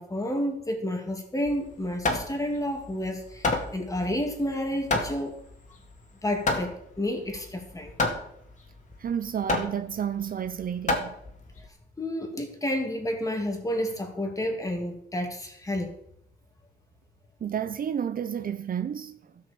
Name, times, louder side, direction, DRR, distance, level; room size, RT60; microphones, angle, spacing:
voice 1, 0.0-5.4 6.2-7.9 12.0-15.9, left 1 dB, 15° left, 2.8 m, -30 dB
Hammer, 1.5-11.7, left 2 dB, 40° left, 2.4 m, -31 dB
voice 2, 9.0-11.2 17.4-19.3, right 8 dB, 45° right, 0.6 m, -31 dB
12.5 x 6.3 x 7.1 m
cardioid pair, 90°, 20 cm